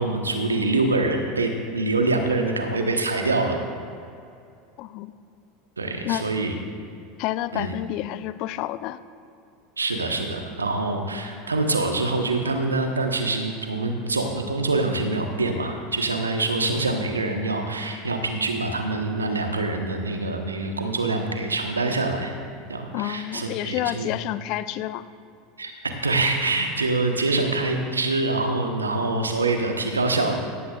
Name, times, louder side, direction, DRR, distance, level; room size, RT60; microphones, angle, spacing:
voice 1, 0.0-3.6 5.8-6.5 7.5-7.7 9.8-22.3 22.7-24.1 25.6-30.4, right 2 dB, 85° right, 4 dB, 1.2 m, -25 dB
voice 2, 4.8-5.1 6.0-6.3 7.2-9.0 22.9-25.0, left 14 dB, 50° left, 13 dB, 0.5 m, -29 dB
17.0 x 14.5 x 2.5 m, 2.5 s
figure-of-eight pair, 80°, 0 cm